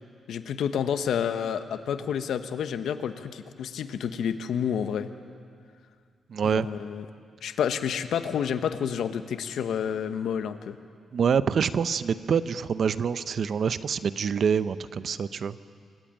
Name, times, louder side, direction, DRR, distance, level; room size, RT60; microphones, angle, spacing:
voice 1, 0.3-5.1 6.4-7.1 7.4-10.8, left 8 dB, 80° left, 10 dB, 1.0 m, -29 dB
voice 2, 6.3-6.7 11.1-15.6, right 6 dB, 55° right, 14 dB, 0.7 m, -26 dB
26.0 x 14.5 x 8.9 m, 2.2 s
cardioid pair, 115°, 0 cm